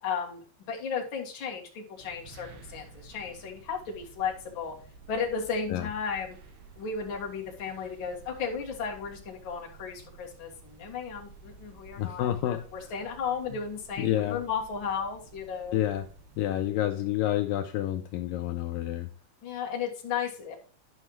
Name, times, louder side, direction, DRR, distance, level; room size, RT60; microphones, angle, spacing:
voice 1, 0.0-4.7 5.1-6.4 6.8-15.8 19.4-20.7, left 6 dB, 45° left, -1 dB, 1.9 m, -34 dB
sound 1, 2.0-16.7, right 4 dB, 85° right, 3.3 m, -52 dB
voice 2, 12.0-12.9 13.5-13.6 14.0-14.4 15.7-16.1 16.4-19.1, left 12 dB, 85° left, 6 dB, 2.0 m, -29 dB
11.0 x 5.6 x 3.1 m, 0.41 s
omnidirectional pair, 4.5 m